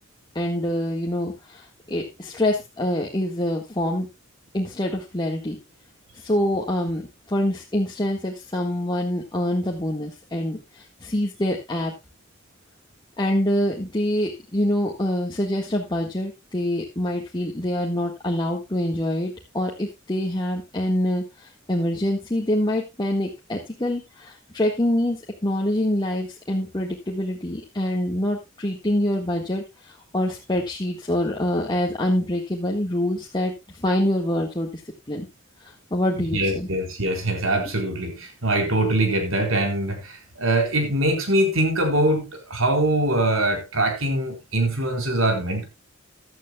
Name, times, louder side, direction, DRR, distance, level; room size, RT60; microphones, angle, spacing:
voice 1, 0.4-4.1 4.5-5.6 6.2-7.0 7.3-11.9 13.2-34.8 35.1-35.3 35.6-36.7 37.7-37.8, left 1 dB, 20° left, 1.6 m, -25 dB
voice 2, 36.3-45.6, right 1 dB, 90° right, 4.3 m, -23 dB
16.0 x 11.5 x 2.3 m
head